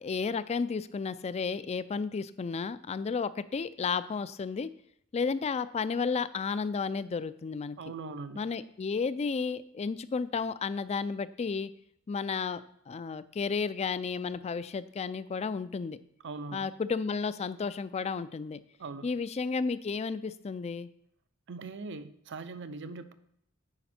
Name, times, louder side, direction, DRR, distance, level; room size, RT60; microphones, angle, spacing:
voice 1, 0.0-4.7 5.1-7.8 8.4-11.7 12.1-12.6 12.9-16.0 16.5-18.6 19.0-20.9, left 5 dB, 30° left, 15 dB, 0.3 m, -32 dB
voice 2, 7.8-8.5 16.2-16.7 18.8-19.1 21.5-23.1, right 3 dB, 60° right, 12 dB, 0.6 m, -41 dB
9.8 x 5.0 x 4.3 m, 0.72 s
head